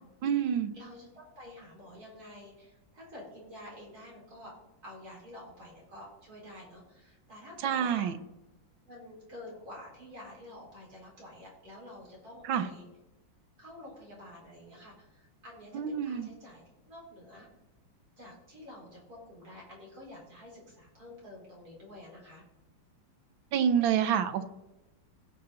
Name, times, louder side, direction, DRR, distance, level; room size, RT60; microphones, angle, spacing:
voice 1, 0.2-0.7 7.6-8.2 12.5-12.7 15.7-16.3 23.5-24.4, right 8 dB, 90° right, 11 dB, 1.6 m, -27 dB
voice 2, 0.7-4.5 4.8-8.1 8.9-12.8 13.6-17.5 18.2-22.4, left 1 dB, 50° right, -3 dB, 4.6 m, -49 dB
16.5 x 6.9 x 3.9 m, 0.98 s
omnidirectional pair, 2.1 m